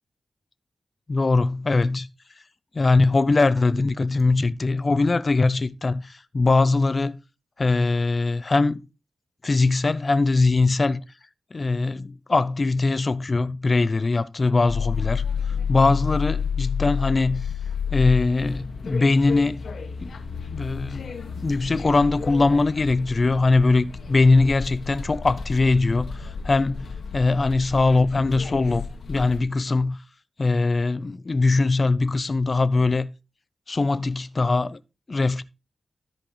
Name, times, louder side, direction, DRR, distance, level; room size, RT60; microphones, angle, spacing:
voice 1, 1.1-2.1 2.7-7.2 7.6-8.9 9.4-11.0 11.5-17.5 17.9-19.6 20.0-20.2 20.5-21.1 21.4-26.9 27.1-30.0 30.4-33.1 33.7-34.8 35.1-35.4, left 3 dB, 45° left, 0.8 m, -21 dB
sound 1, 14.7-29.4, left 6 dB, 80° left, 1.4 m, -31 dB
13.5 x 4.4 x 4.9 m
cardioid pair, 65°, 0 cm